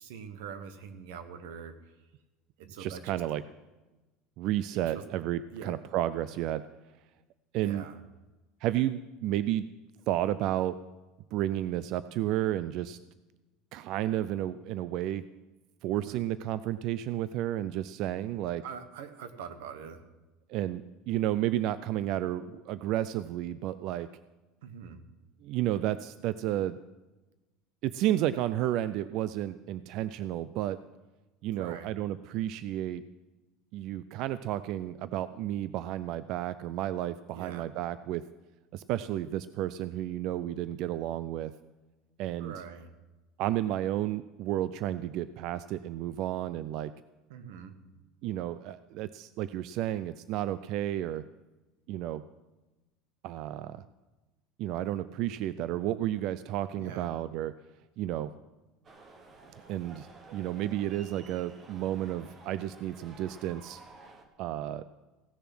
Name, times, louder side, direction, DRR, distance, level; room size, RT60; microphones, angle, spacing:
voice 1, 0.0-1.7 2.6-3.2 4.9-5.0 5.5-5.7 7.6-8.0 16.0-16.2 18.6-20.0 24.6-25.0 31.6-32.0 37.3-37.7 42.4-42.9 47.3-48.0 56.8-57.1, right 7 dB, 85° right, 10 dB, 1.2 m, -44 dB
voice 2, 2.6-3.4 4.4-6.7 7.5-7.8 8.6-9.7 10.1-10.8 11.3-13.0 13.7-15.2 15.8-18.6 20.5-24.1 25.4-26.8 27.8-30.8 31.4-33.0 33.7-38.2 38.7-41.5 42.2-42.5 43.4-46.9 48.2-51.2 51.9-52.2 53.2-53.8 54.6-57.6 58.0-58.3 59.7-63.8 64.4-64.8, right 13 dB, 45° right, 15 dB, 0.3 m, -32 dB
sound 1, 58.8-64.2, right 3 dB, 25° right, 1.2 m, -52 dB
16.0 x 6.8 x 6.1 m, 1.1 s
cardioid pair, 170°, 0 cm